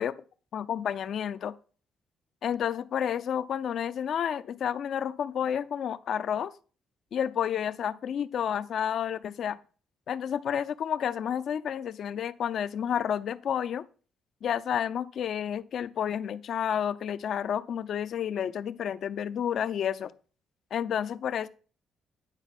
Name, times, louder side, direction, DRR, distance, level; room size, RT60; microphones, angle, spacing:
voice 1, 0.5-1.5 2.4-6.5 7.1-9.6 10.1-13.9 14.4-20.1 20.7-21.5, left 9 dB, 65° left, 0.6 m, -30 dB
9.8 x 4.5 x 5.9 m
cardioid pair, 90°, 0 cm